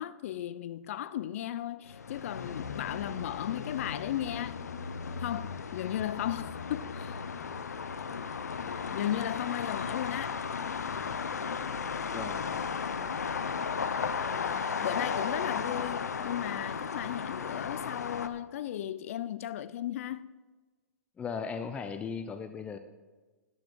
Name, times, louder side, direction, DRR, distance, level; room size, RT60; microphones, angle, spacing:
voice 1, 0.0-4.6 5.1-7.2 8.9-10.4 12.9-13.3 14.2-20.2, left 11 dB, 60° left, 0.5 m, -36 dB
sound 1, 1.9-18.3, left 6 dB, 90° left, 0.8 m, -35 dB
voice 2, 12.1-12.4 21.2-22.8, left 5 dB, 15° left, 0.6 m, -37 dB
12.0 x 11.5 x 4.6 m
hypercardioid pair, 135°, 9 cm